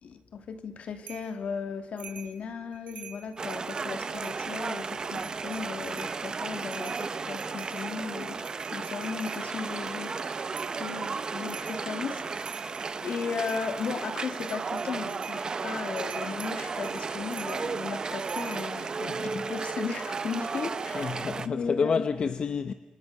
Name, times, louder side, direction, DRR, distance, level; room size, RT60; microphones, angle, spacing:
voice 1, 0.0-8.5 8.7-12.2 13.0-21.1 21.4-22.0, left 6 dB, 60° left, 2.6 m, -36 dB
sound 1, 1.1-1.3 2.0-2.3 2.7-3.7 4.2-4.7 5.1-6.2 6.5-9.4 10.6-10.8 11.5-11.8 12.2-12.9 13.4-14.0 14.3-15.4 16.0-18.7, right 6 dB, 70° right, 4.2 m, -45 dB
sound 2, 3.4-21.5, right 4 dB, 35° right, 0.9 m, -34 dB
voice 2, 18.8-19.5 20.9-22.7, left 5 dB, 40° left, 0.9 m, -30 dB
29.5 x 26.5 x 6.7 m
wide cardioid pair, 175°, 2 cm